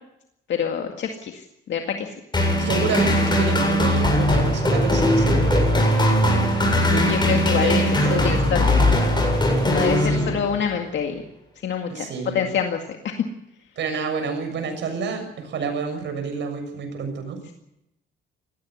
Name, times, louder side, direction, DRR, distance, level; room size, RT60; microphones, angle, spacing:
voice 1, 0.5-1.4 1.7-2.1 6.9-8.8 9.6-11.2 11.6-12.1 12.3-13.1, left 7 dB, 65° left, 3 dB, 2.1 m, -26 dB
sound 1, 2.3-10.7, equal, 20° left, 7.9 m, -20 dB
voice 2, 2.5-6.9 7.6-8.6 10.0-10.4 11.9-12.5 13.8-17.4, right 5 dB, 65° right, 5 dB, 7.0 m, -29 dB
19.0 x 15.0 x 9.7 m, 0.84 s
cardioid pair, 90°, 20 cm